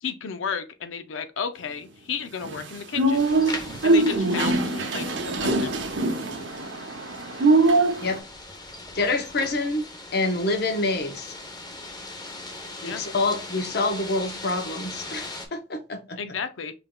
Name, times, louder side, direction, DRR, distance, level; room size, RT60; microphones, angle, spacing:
voice 1, 0.0-3.3 3.8-5.8 12.8-13.0 16.2-16.7, left 6 dB, 85° left, 0.5 m, -33 dB
sound 1, 2.4-8.2, right 2 dB, 70° right, 0.7 m, -23 dB
sound 2, 3.1-15.5, left 2 dB, 20° left, 0.7 m, -40 dB
voice 2, 8.9-9.9 10.1-11.4 12.8-16.2, left 2 dB, 55° left, 0.8 m, -27 dB
5.6 x 3.4 x 2.3 m
head